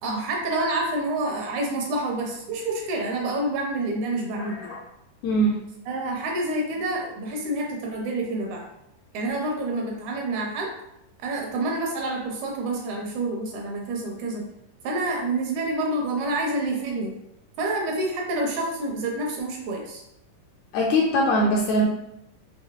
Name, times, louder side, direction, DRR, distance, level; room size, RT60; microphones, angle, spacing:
voice 1, 0.0-4.7 5.9-8.6 9.1-10.7 11.2-14.4 14.8-17.1 17.6-20.0, right 2 dB, 75° right, 0 dB, 2.0 m, -28 dB
voice 2, 4.3-4.8 5.2-5.6 20.7-21.9, equal, 80° left, -1 dB, 1.7 m, -22 dB
5.8 x 3.0 x 3.0 m, 0.83 s
omnidirectional pair, 3.7 m